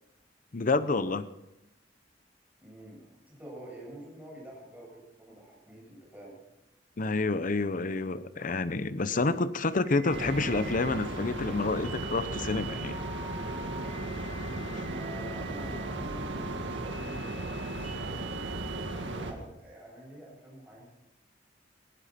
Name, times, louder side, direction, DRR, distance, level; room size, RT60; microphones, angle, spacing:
voice 1, 0.5-1.2 7.0-13.0, left 3 dB, 45° left, 13 dB, 0.8 m, -28 dB
voice 2, 2.6-6.4 14.8-18.6 19.0-20.9, right 1 dB, 10° right, -3 dB, 7.9 m, -47 dB
sound 1, 9.8-18.9, right 5 dB, 45° right, 5.8 m, -46 dB
sound 2, 10.1-19.3, right 2 dB, 75° right, 2.1 m, -36 dB
19.5 x 15.5 x 4.3 m, 0.93 s
head